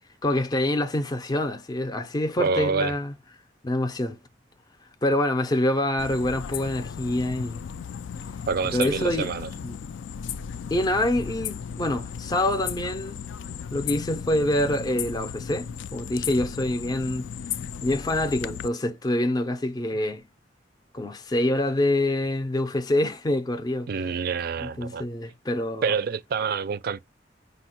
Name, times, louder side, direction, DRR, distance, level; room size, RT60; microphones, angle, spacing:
voice 1, 0.2-3.1 3.6-4.2 5.0-7.7 8.7-9.3 9.6-9.8 10.7-13.2 13.7-17.3 17.8-20.3 20.9-23.9 24.6-25.9, left 1 dB, 20° left, 0.4 m, -26 dB
voice 2, 2.4-2.9 8.5-9.5 23.9-25.0 25.8-27.0, right 5 dB, 55° right, 0.4 m, -27 dB
sound 1, 6.0-18.7, left 7 dB, 90° left, 0.3 m, -35 dB
5.2 x 2.1 x 4.2 m
head